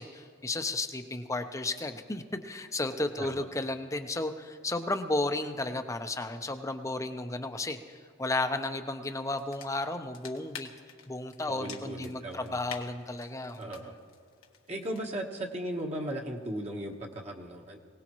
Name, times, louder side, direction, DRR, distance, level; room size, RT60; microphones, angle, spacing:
voice 1, 0.0-10.7 11.1-13.7, left 2 dB, 15° left, 7 dB, 0.7 m, -33 dB
sound 1, 9.4-15.1, left 7 dB, 85° left, 1.4 m, -49 dB
voice 2, 11.5-12.6 13.6-13.9 14.7-17.8, right 1 dB, 30° right, 0 dB, 1.2 m, -37 dB
24.0 x 18.0 x 3.1 m, 2.2 s
head